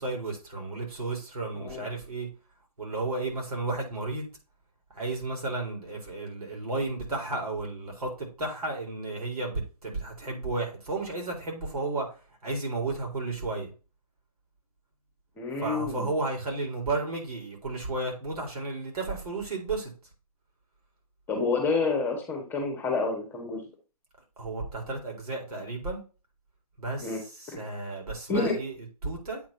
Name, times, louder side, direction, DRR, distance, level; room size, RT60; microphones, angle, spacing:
voice 1, 0.0-2.3 2.8-4.3 4.9-12.2 12.4-13.7 15.6-19.9 24.4-26.0 26.8-29.4, right 3 dB, 75° right, 0 dB, 3.9 m, -33 dB
voice 2, 15.4-16.1 21.3-23.6 27.0-27.2 27.5-27.6 28.3-28.5, left 4 dB, 10° left, 2 dB, 1.5 m, -28 dB
8.4 x 4.9 x 2.7 m, 0.33 s
hypercardioid pair, 150°, 19 cm